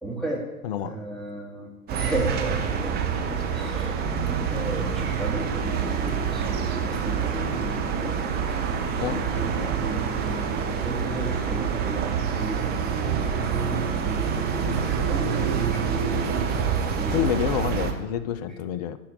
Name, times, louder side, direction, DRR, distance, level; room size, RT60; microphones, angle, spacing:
voice 1, 0.0-0.5 0.8-2.6 2.8-8.6 9.1-13.7 14.0-16.4 17.0-17.2 18.4-18.6, right 2 dB, ahead, -5 dB, 2.4 m, -34 dB
voice 2, 0.6-1.0 9.0-9.2 17.1-19.0, left 10 dB, 30° left, 13 dB, 0.4 m, -28 dB
sound 1, 1.9-17.9, right 6 dB, 20° right, 1.0 m, -26 dB
11.5 x 4.5 x 6.2 m, 1.0 s
figure-of-eight pair, 100°, 44 cm